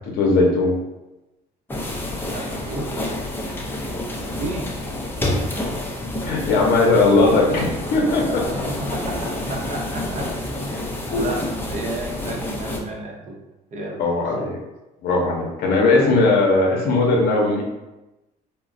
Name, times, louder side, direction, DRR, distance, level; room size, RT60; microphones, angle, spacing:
voice 1, 0.2-0.7 6.2-8.4 11.1-11.2 14.0-14.5 15.0-17.6, left 3 dB, 70° left, -1 dB, 0.7 m, -18 dB
sound 1, 1.7-12.8, left 1 dB, 10° left, 0.5 m, -28 dB
voice 2, 2.2-2.9 4.4-4.8 7.5-7.7 8.7-10.3 11.1-11.4 11.7-13.4 13.7-14.5, right 2 dB, 45° right, 0 dB, 0.7 m, -32 dB
3.7 x 2.1 x 2.5 m, 1.0 s
cardioid pair, 110°, 17 cm